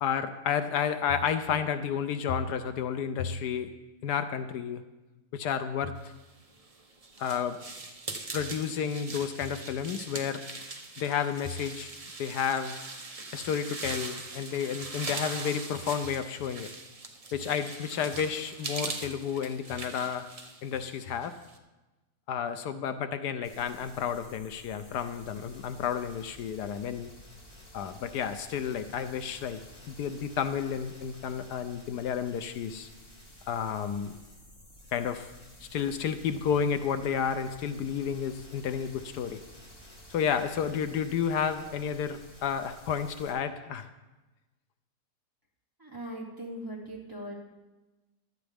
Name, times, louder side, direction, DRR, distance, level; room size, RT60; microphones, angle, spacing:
voice 1, 0.0-3.7 4.0-4.8 5.3-6.0 7.2-7.6 8.3-10.4 11.0-11.9 12.2-12.7 13.3-16.7 17.3-20.3 20.6-21.3 22.3-27.1 27.7-29.6 29.9-32.9 33.5-34.2 34.9-35.3 35.7-39.4 40.1-43.9, left 7 dB, 75° left, 10 dB, 1.2 m, -31 dB
sound 1, 6.4-21.6, right 3 dB, 30° right, 0.8 m, -41 dB
sound 2, 23.4-43.3, equal, 35° left, 2.5 m, -52 dB
voice 2, 45.8-47.3, right 1 dB, 10° right, -2 dB, 2.3 m, -40 dB
16.0 x 12.0 x 3.5 m, 1.1 s
omnidirectional pair, 1.8 m